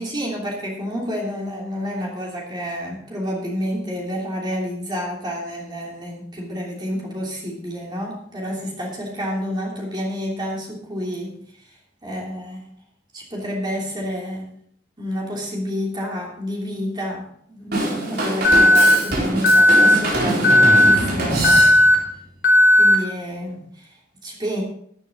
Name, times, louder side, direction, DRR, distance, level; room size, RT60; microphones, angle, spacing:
voice 1, 0.0-11.8 12.0-12.7 13.1-14.5 15.0-21.7 22.8-24.6, equal, 25° right, -3 dB, 3.0 m, -29 dB
Drum kit / Drum, 17.7-22.1, right 1 dB, 60° right, 4.7 m, -24 dB
Alarm, 18.4-18.9 19.4-19.9 20.4-20.9 21.4-21.9 22.4-22.9, left 1 dB, 75° left, 3.7 m, -13 dB
13.0 x 11.0 x 4.0 m, 0.66 s
head